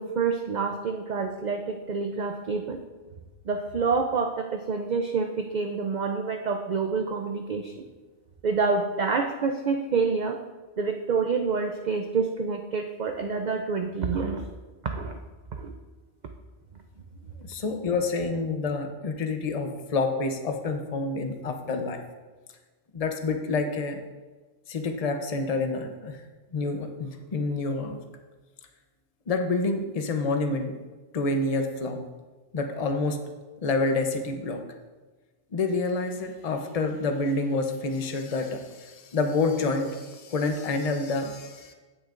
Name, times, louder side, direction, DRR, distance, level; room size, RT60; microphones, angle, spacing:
voice 1, 0.0-2.8 3.5-7.8 8.4-10.4 10.8-14.4 14.8-15.2 15.5-15.7, right 5 dB, 50° right, 4 dB, 0.5 m, -27 dB
voice 2, 17.4-22.0 22.9-24.0 24.7-26.2 26.5-28.0 29.3-30.7 31.1-32.0 32.5-33.2 33.6-34.6 35.5-41.7, left 3 dB, 35° left, 5 dB, 0.8 m, -28 dB
15.5 x 6.4 x 2.5 m, 1.3 s
omnidirectional pair, 1.2 m